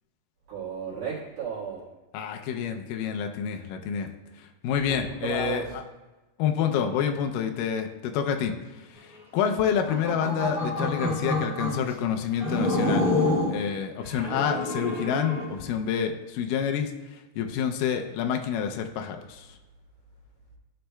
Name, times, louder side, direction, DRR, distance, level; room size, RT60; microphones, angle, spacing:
voice 1, 0.5-1.8 4.9-5.7, right 5 dB, 70° right, -9 dB, 3.5 m, -34 dB
voice 2, 2.1-4.1 4.4-5.6 6.4-13.1 13.5-19.6, left 8 dB, 90° left, 4 dB, 1.9 m, -28 dB
sound 1, 9.7-11.8 12.4-13.6 14.1-15.5, left 2 dB, ahead, 1.7 m, -27 dB
14.5 x 6.4 x 2.2 m, 1.1 s
omnidirectional pair, 4.5 m